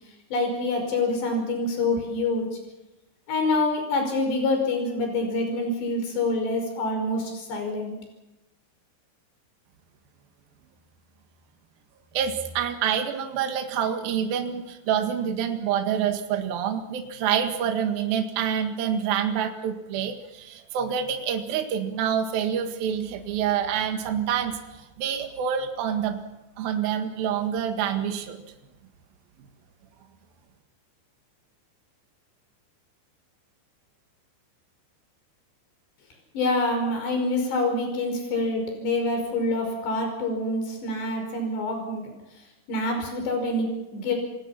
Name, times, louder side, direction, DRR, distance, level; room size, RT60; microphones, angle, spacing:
voice 1, 0.3-2.5 3.3-8.0 36.3-42.1 42.7-44.2, left 2 dB, 70° left, 4 dB, 7.5 m, -26 dB
voice 2, 12.1-24.5 25.0-26.2 26.6-28.4, right 8 dB, 60° right, 5 dB, 3.4 m, -27 dB
29.5 x 19.0 x 5.8 m, 0.97 s
omnidirectional pair, 5.2 m